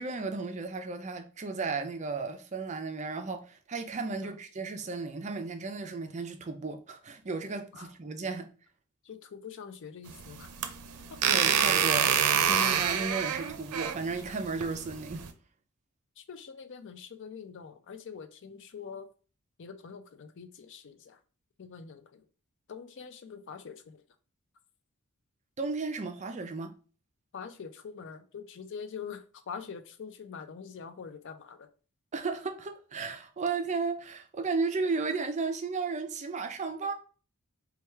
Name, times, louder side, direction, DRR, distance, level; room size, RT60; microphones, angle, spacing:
voice 1, 0.0-8.5 11.3-15.3 25.6-26.7 32.1-36.9, right 4 dB, 30° right, 0.4 m, -34 dB
voice 2, 9.0-10.5 11.1-11.2 16.2-19.1 19.6-21.2 21.6-22.2 22.7-24.0 27.3-31.7, left 6 dB, 55° left, 0.4 m, -44 dB
sound 1, 10.1-15.3, right 8 dB, 90° right, 0.5 m, -27 dB
3.3 x 2.3 x 4.3 m
head